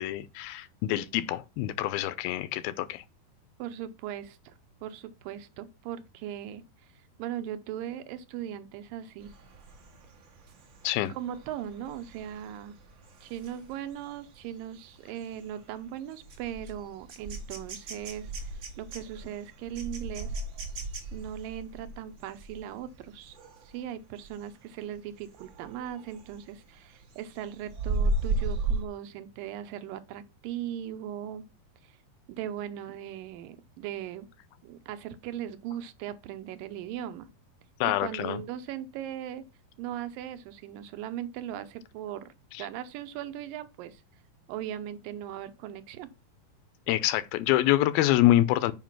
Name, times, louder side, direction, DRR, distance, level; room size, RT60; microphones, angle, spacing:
voice 1, 0.0-3.0 10.8-11.1 37.8-38.4 42.5-42.7 46.9-48.7, left 14 dB, 80° left, 2.4 m, -26 dB
voice 2, 3.6-4.5 4.8-6.6 7.2-9.3 11.1-12.8 13.2-20.4 21.1-23.4 23.7-31.5 31.8-31.9 32.3-34.3 34.6-37.3 37.8-39.4 39.8-42.3 42.6-44.0 44.5-46.1, right 10 dB, 75° right, 2.3 m, -38 dB
sound 1, 9.2-23.8 24.2-24.5 24.8-26.5 26.8-28.8, right 2 dB, 50° right, 1.6 m, -36 dB
7.3 x 5.6 x 5.8 m
omnidirectional pair, 4.4 m